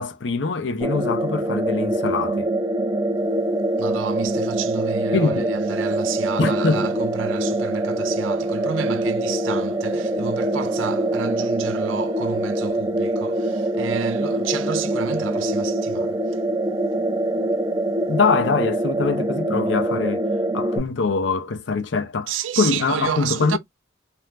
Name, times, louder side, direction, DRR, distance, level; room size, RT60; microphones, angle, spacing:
voice 1, 0.0-2.5 5.1-5.5 6.4-6.9 18.1-20.2 20.5-23.6, left 4 dB, 65° left, 0.6 m, -23 dB
sound 1, 0.8-20.8, right 1 dB, 20° right, 0.5 m, -24 dB
voice 2, 3.8-16.4 22.3-23.6, right 7 dB, 90° right, 0.4 m, -30 dB
2.6 x 2.0 x 3.2 m
head